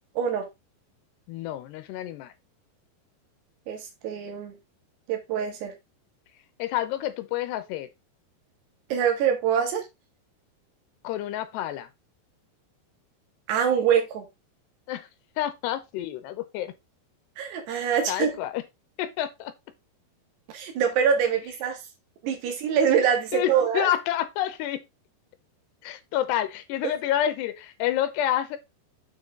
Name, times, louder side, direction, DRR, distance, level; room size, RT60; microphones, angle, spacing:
voice 1, 0.2-0.5 3.7-4.5 5.1-5.7 8.9-9.9 13.5-14.3 17.4-18.3 20.5-21.8 22.2-23.9, right 7 dB, 70° right, 3.8 m, -24 dB
voice 2, 1.3-2.3 6.6-7.9 11.0-11.9 14.9-15.1 15.4-16.7 17.7-18.6 19.0-19.5 23.3-24.8 25.8-28.6, left 12 dB, 80° left, 2.8 m, -29 dB
7.6 x 5.7 x 3.8 m
omnidirectional pair, 5.2 m